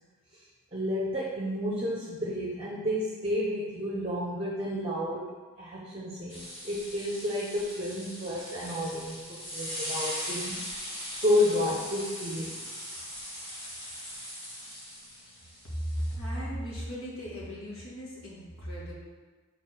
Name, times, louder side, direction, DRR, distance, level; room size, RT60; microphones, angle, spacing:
voice 1, 0.7-5.3 5.6-10.6 11.2-12.6, left 1 dB, 25° right, -4 dB, 0.7 m, -31 dB
sound 1, 6.3-16.2, equal, 25° left, 2.0 m, -40 dB
voice 2, 15.9-18.9, equal, 80° left, -5 dB, 1.9 m, -36 dB
6.7 x 4.0 x 4.5 m, 1.4 s
head